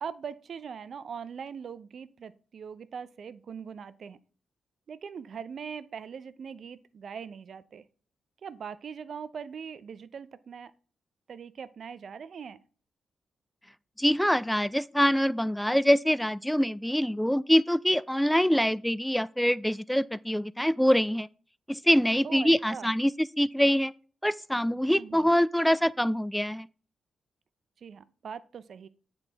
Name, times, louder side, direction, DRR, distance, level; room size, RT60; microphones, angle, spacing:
voice 1, 0.0-4.2 4.9-7.9 8.4-10.7 11.3-12.6 22.2-22.9 24.9-25.4 27.8-28.9, right 6 dB, 65° right, 0.4 m, -41 dB
voice 2, 14.0-21.3 21.7-23.1 23.4-23.9 24.2-26.7, equal, 5° left, 0.3 m, -24 dB
8.1 x 4.0 x 3.4 m
supercardioid pair, 45°, 0 cm